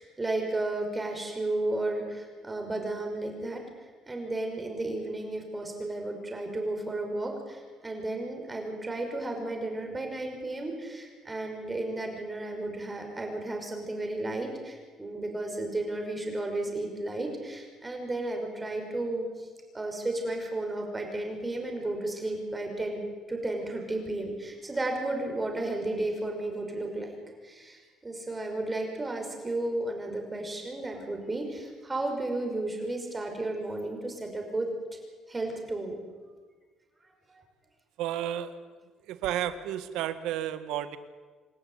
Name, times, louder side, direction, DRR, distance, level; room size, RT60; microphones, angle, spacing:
voice 1, 0.0-3.6 4.1-19.5 19.7-23.0 23.3-27.1 27.4-34.7 35.3-36.0 37.3-37.4, right 2 dB, 15° right, 3 dB, 5.8 m, -33 dB
voice 2, 38.0-38.5 39.1-41.0, right 11 dB, 90° right, 11 dB, 1.7 m, -32 dB
27.5 x 14.0 x 9.6 m, 1.4 s
cardioid pair, 125°, 0 cm